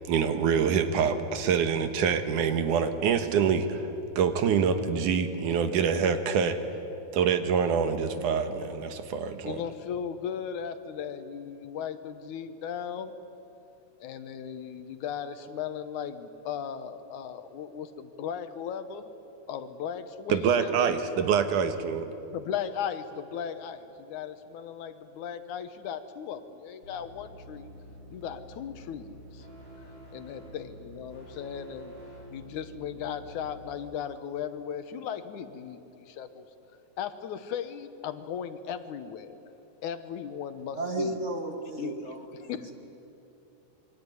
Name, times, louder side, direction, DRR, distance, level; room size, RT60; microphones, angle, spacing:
voice 1, 0.0-3.8 4.2-6.6 7.1-9.6 20.3-22.1, right 6 dB, 85° right, 8 dB, 2.9 m, -25 dB
voice 2, 9.4-13.1 14.0-19.1 19.5-21.0 22.3-27.7 28.1-29.5 30.1-31.9 32.3-36.4 37.0-39.4 39.8-41.1 41.8-42.0 42.4-42.7, left 8 dB, 75° left, 10 dB, 2.6 m, -37 dB
sound 1, 26.8-33.7, equal, 60° right, 7.1 m, -48 dB
voice 3, 40.7-42.6, right 2 dB, 30° right, 4 dB, 1.6 m, -33 dB
27.0 x 22.5 x 9.5 m, 3.0 s
omnidirectional pair, 3.5 m